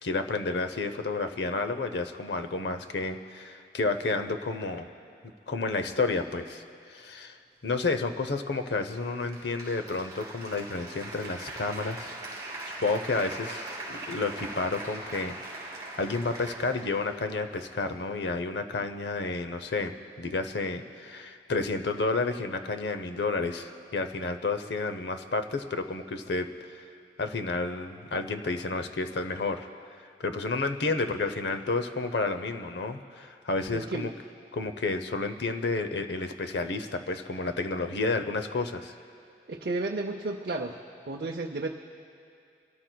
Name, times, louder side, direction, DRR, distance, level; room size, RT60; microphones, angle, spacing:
voice 1, 0.0-4.9 5.5-6.6 6.9-12.1 12.7-26.5 27.2-29.7 30.2-34.1 34.5-38.9, left 3 dB, 75° left, 9 dB, 0.7 m, -31 dB
Applause, 8.9-17.9, right 2 dB, 20° right, 2.5 m, -41 dB
voice 2, 33.7-34.1 39.5-40.8 41.1-41.7, right 2 dB, 60° right, 1 dB, 0.6 m, -32 dB
29.0 x 13.5 x 2.3 m, 2.5 s
head